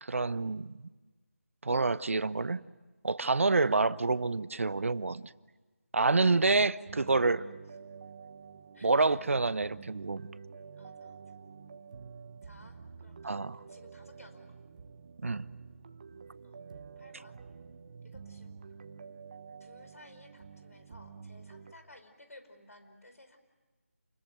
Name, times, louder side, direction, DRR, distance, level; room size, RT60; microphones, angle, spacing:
voice 1, 0.0-0.9 1.6-2.6 3.0-5.3 5.9-7.4 8.8-10.2 13.2-13.6 15.2-15.5, right 3 dB, 65° right, 17 dB, 0.9 m, -28 dB
voice 2, 6.2-7.4 8.7-9.2 10.8-11.2 12.4-14.6 16.4-16.6 17.0-17.4 18.0-18.7 19.6-23.4, left 1 dB, 80° left, 8 dB, 5.1 m, -56 dB
sound 1, 6.9-21.7, right 5 dB, 35° right, 1.1 m, -49 dB
29.0 x 21.5 x 9.2 m, 1.2 s
figure-of-eight pair, 165°, 8 cm